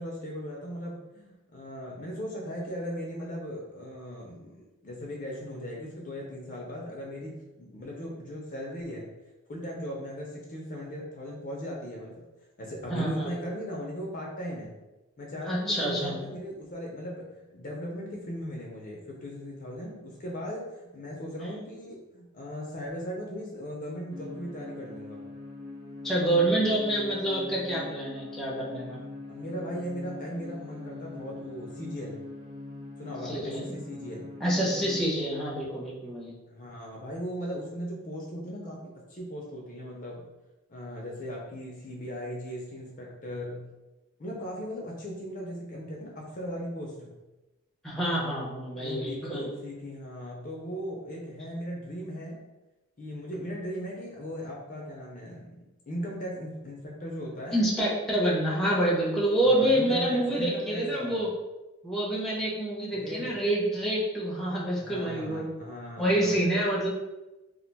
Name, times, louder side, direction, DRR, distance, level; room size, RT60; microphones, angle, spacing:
voice 1, 0.0-9.1 9.5-12.2 12.6-14.7 15.2-25.2 29.3-32.2 33.0-34.3 36.5-40.2 40.7-43.6 44.2-47.1 48.7-52.4 53.0-55.6 55.9-57.6 59.4-61.2 62.9-63.3 64.8-66.3, equal, 40° left, -2 dB, 0.5 m, -38 dB
voice 2, 12.9-13.3 15.5-16.1 26.0-29.0 33.2-33.6 34.4-36.3 47.8-49.5 57.5-61.3 61.8-65.5 66.0-66.9, right 1 dB, ahead, -5 dB, 0.6 m, -27 dB
sound 1, 24.1-35.0, left 2 dB, 65° right, 0.6 m, -43 dB
2.5 x 2.2 x 3.9 m, 1.0 s
head